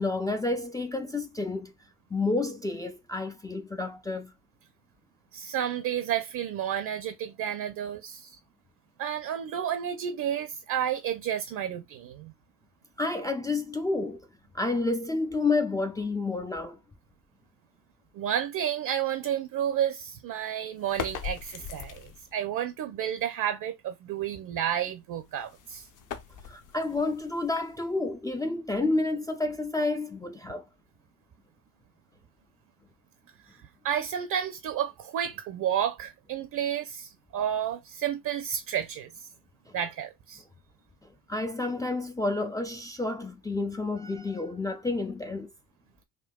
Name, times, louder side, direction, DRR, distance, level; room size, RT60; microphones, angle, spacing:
voice 1, 0.0-1.7 2.1-4.3 13.0-14.3 14.5-16.8 26.5-30.6 41.3-45.5, left 3 dB, 10° left, 0.3 m, -30 dB
voice 2, 5.3-8.4 9.0-12.3 18.1-25.9 33.8-39.1 39.7-40.4, right 9 dB, 45° right, 0.6 m, -31 dB
sound 1, 20.8-22.4 25.1-28.1, left 7 dB, 45° left, 0.7 m, -40 dB
3.6 x 2.2 x 2.2 m
hypercardioid pair, 70°, 43 cm